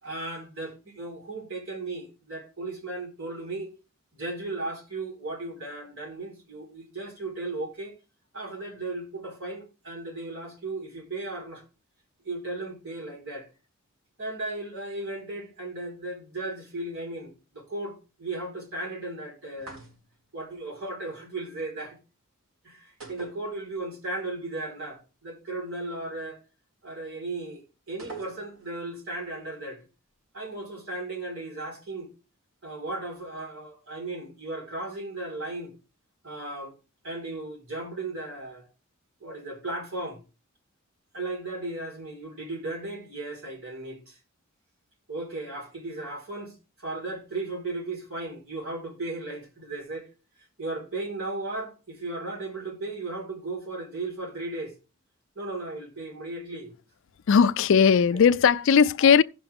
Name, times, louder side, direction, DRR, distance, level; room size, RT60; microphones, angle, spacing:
voice 1, 0.0-3.7 4.1-7.9 8.3-11.6 12.2-13.5 14.2-19.8 20.3-22.0 22.6-26.4 26.8-29.8 30.3-32.1 32.6-35.7 36.2-36.7 37.0-38.7 39.2-40.2 41.1-44.2 45.1-46.5 46.8-50.1 50.6-54.7 55.4-56.7 58.1-58.2, right 2 dB, 65° right, 4.4 m, -36 dB
sound 1, 19.6-20.3 23.0-24.1 24.3-24.4 28.0-28.8, right 4 dB, 80° right, 3.9 m, -44 dB
voice 2, 57.3-59.2, left 6 dB, 60° left, 0.4 m, -18 dB
16.5 x 6.0 x 3.5 m
head